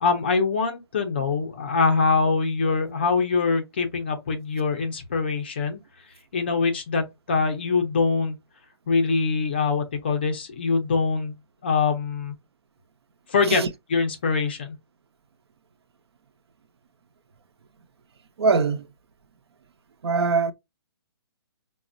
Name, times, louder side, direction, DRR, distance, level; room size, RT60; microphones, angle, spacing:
voice 1, 0.0-5.8 6.3-8.4 8.9-11.3 11.6-12.3 13.3-13.6 13.9-14.8, left 4 dB, 25° left, 0.4 m, -23 dB
voice 2, 18.4-18.8 20.0-20.5, right 4 dB, 70° right, 0.6 m, -22 dB
4.8 x 2.1 x 2.5 m
hypercardioid pair, 175°, 14 cm